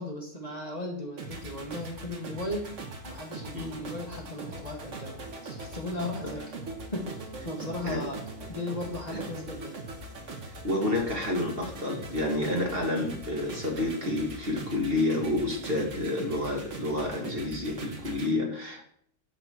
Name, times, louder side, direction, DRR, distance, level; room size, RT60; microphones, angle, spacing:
voice 1, 0.0-2.7 3.0-6.5 6.9-8.2 8.5-9.7, left 1 dB, 35° left, 1 dB, 1.4 m, -36 dB
sound 1, 1.2-18.3, right 2 dB, 70° right, 1.7 m, -41 dB
voice 2, 10.5-18.9, left 2 dB, 50° right, 0 dB, 2.1 m, -29 dB
11.0 x 3.9 x 6.2 m, 0.64 s
omnidirectional pair, 1.3 m